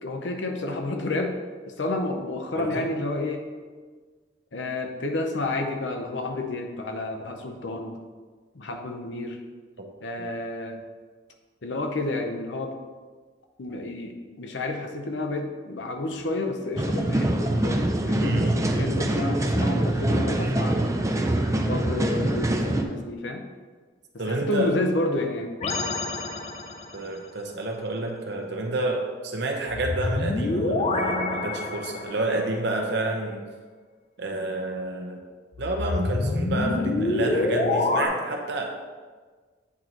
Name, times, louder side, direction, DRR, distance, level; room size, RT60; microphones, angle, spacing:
voice 1, 0.0-1.3 1.7-3.4 4.5-8.0 8.5-9.4 10.0-10.8 11.6-12.7 13.6-20.8 21.6-23.4 24.3-25.5, left 2 dB, 75° left, 3 dB, 0.7 m, -30 dB
voice 2, 2.5-2.9 9.8-9.9 10.2-10.3 18.2-18.8 24.2-24.7 26.9-33.4 34.2-35.2 35.6-38.7, right 2 dB, 65° right, 2 dB, 0.8 m, -29 dB
sound 1, 16.8-22.8, right 1 dB, 15° right, 0.4 m, -24 dB
sound 2, 25.6-27.0 29.7-32.3 35.5-38.1, left 2 dB, 40° left, 0.5 m, -26 dB
8.4 x 3.0 x 3.8 m, 1.5 s
head